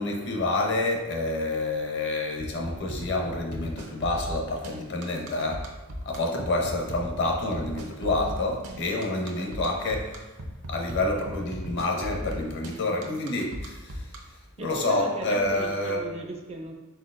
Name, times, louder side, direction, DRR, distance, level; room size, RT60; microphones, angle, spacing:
voice 1, 0.0-5.7 6.0-10.3 10.7-16.0, left 2 dB, 55° left, 1 dB, 0.7 m, -28 dB
sound 1, 2.4-14.2, equal, 70° right, 0.7 m, -37 dB
voice 2, 14.6-16.7, right 2 dB, 30° right, 2 dB, 0.4 m, -37 dB
4.4 x 4.1 x 2.4 m, 1.1 s
head